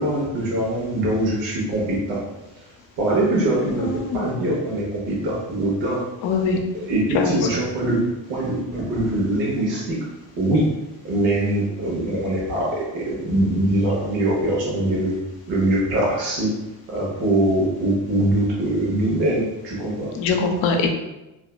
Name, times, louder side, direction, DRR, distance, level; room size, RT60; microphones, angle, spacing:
voice 1, 0.0-2.2 3.0-6.1 6.7-10.0 10.4-10.7 11.0-15.2 15.5-16.5 16.9-20.1, right 1 dB, 90° right, -5 dB, 0.9 m, -22 dB
voice 2, 3.8-4.2 6.2-6.6 7.1-7.4 20.2-20.9, left 4 dB, 80° left, 3 dB, 0.6 m, -21 dB
2.5 x 2.2 x 2.2 m, 0.98 s
cardioid pair, 105°, 44 cm